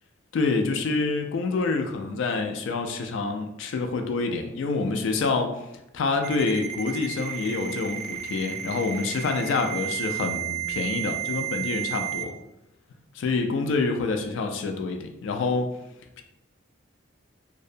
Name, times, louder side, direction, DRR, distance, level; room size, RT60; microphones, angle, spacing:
voice 1, 0.3-5.6 5.9-12.3 13.1-15.7, left 3 dB, 70° left, 5 dB, 0.3 m, -27 dB
Ringtone, 6.2-12.2, right 11 dB, 40° right, 0.3 m, -32 dB
2.6 x 2.0 x 2.5 m, 0.87 s
head